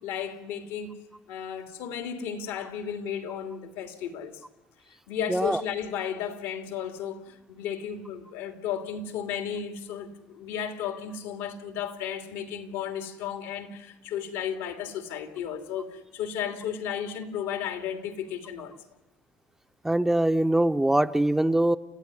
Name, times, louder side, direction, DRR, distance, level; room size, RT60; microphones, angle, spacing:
voice 1, 0.0-0.9 1.3-4.4 5.1-18.7, left 8 dB, 85° left, 2.9 m, -34 dB
voice 2, 5.3-5.6 19.8-21.8, right 1 dB, 10° right, 0.7 m, -23 dB
29.5 x 14.0 x 9.8 m
supercardioid pair, 95°, 5 cm